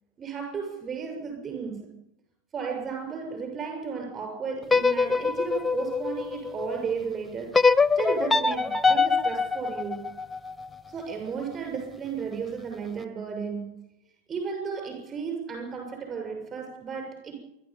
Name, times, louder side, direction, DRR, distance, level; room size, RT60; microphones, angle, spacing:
voice 1, 0.2-2.0 2.5-10.1 10.9-13.9 14.3-17.4, right 5 dB, 25° right, 4 dB, 6.9 m, -34 dB
sound 1, 4.6-6.8 7.5-10.7, left 4 dB, 5° left, 0.7 m, -24 dB
27.5 x 12.5 x 8.8 m, 0.83 s
figure-of-eight pair, 90°, 0 cm